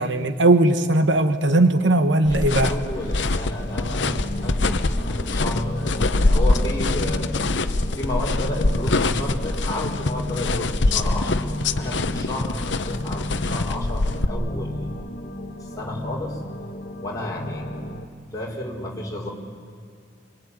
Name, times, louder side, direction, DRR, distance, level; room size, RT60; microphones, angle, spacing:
voice 1, 0.0-2.7, right 2 dB, 70° right, 9 dB, 1.2 m, -18 dB
sound 1, 1.7-18.1, left 1 dB, 45° left, 1.6 m, -35 dB
sound 2, 2.2-14.2, left 2 dB, 70° left, 1.0 m, -24 dB
voice 2, 2.3-7.3 7.9-11.5 11.7-14.9 15.6-16.4 17.0-17.7 18.3-19.3, left 1 dB, 20° left, -2 dB, 4.2 m, -31 dB
25.5 x 22.5 x 9.7 m, 2.4 s
head